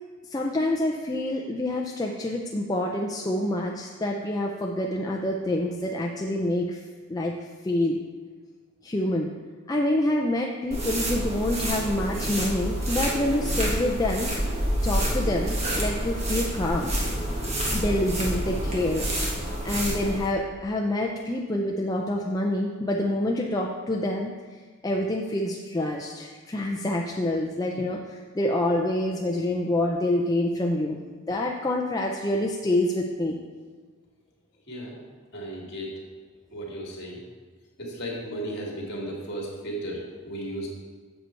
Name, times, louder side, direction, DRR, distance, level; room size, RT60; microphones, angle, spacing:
voice 1, 0.3-6.8 7.1-7.4 7.6-8.0 8.8-9.3 9.7-14.3 14.8-16.9 17.7-19.1 19.6-24.3 24.8-31.0 31.3-33.4, left 1 dB, 15° left, -1 dB, 0.4 m, -27 dB
sound 1, 10.7-20.3, right 1 dB, 30° right, 1.3 m, -28 dB
voice 2, 34.7-35.0 35.3-36.0 36.5-37.2 37.8-40.7, right 1 dB, 50° left, -2 dB, 2.2 m, -35 dB
7.9 x 6.7 x 4.4 m, 1.5 s
head